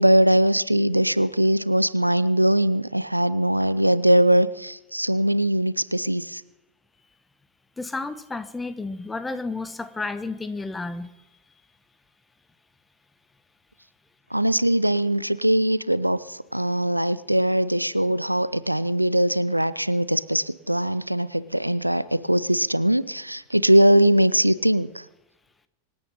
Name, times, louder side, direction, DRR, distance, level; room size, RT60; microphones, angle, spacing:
voice 1, 0.0-6.4 14.3-16.2 16.5-24.9, right 1 dB, 90° right, 17 dB, 0.5 m, -21 dB
voice 2, 7.8-11.1, left 3 dB, 10° left, 13 dB, 1.1 m, -31 dB
25.0 x 9.2 x 5.5 m, 0.95 s
figure-of-eight pair, 90°, 0 cm